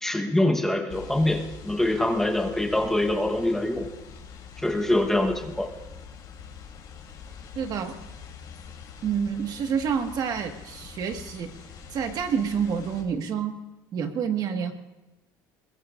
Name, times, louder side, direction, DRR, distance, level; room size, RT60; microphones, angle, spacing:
voice 1, 0.0-3.9 4.6-5.7, left 1 dB, 5° left, 3 dB, 1.1 m, -24 dB
sound 1, 0.9-13.0, left 6 dB, 55° left, 3.1 m, -44 dB
voice 2, 7.5-8.0 9.0-11.5 11.9-13.6 13.9-14.7, right 7 dB, 50° right, 5 dB, 1.6 m, -28 dB
21.5 x 21.0 x 2.5 m, 1.0 s
cardioid pair, 130°, 9 cm